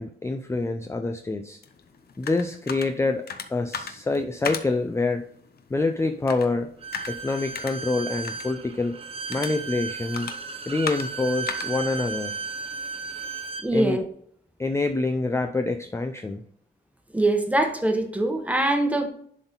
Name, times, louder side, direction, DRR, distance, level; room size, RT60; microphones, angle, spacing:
voice 1, 0.0-1.6 2.2-3.2 3.5-5.2 5.7-6.7 7.1-9.0 9.3-10.3 10.7-12.4 13.7-14.0 14.6-16.4, left 3 dB, 15° left, 6 dB, 0.4 m, -26 dB
sound 1, 1.6-13.3, left 6 dB, 60° left, 0.8 m, -39 dB
Bowed string instrument, 6.8-13.7, right 4 dB, 35° right, 0.8 m, -35 dB
voice 2, 13.6-14.0 17.1-19.1, right 1 dB, 10° right, 5 dB, 1.1 m, -23 dB
11.0 x 3.9 x 4.0 m, 0.65 s
wide cardioid pair, 135°, 18 cm